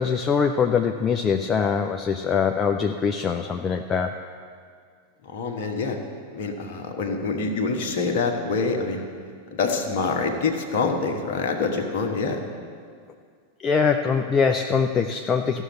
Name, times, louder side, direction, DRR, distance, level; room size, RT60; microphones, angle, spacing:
voice 1, 0.0-4.2 13.6-15.6, left 6 dB, 20° left, 5 dB, 0.5 m, -23 dB
voice 2, 5.2-6.0 6.3-9.1 9.5-12.4, left 4 dB, 50° left, 2 dB, 1.2 m, -26 dB
14.5 x 6.3 x 8.1 m, 2.1 s
figure-of-eight pair, 90°, 0 cm